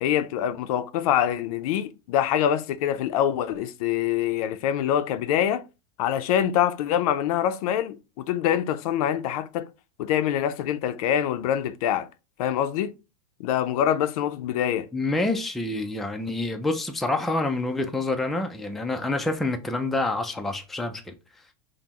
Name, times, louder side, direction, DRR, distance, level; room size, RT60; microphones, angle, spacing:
voice 1, 0.0-5.6 6.0-9.7 10.0-12.1 12.4-12.9 13.4-14.9, left 10 dB, 70° left, 0.5 m, -25 dB
voice 2, 14.9-21.1, left 2 dB, ahead, 0.3 m, -27 dB
5.3 x 2.0 x 2.9 m
supercardioid pair, 135°, 20 cm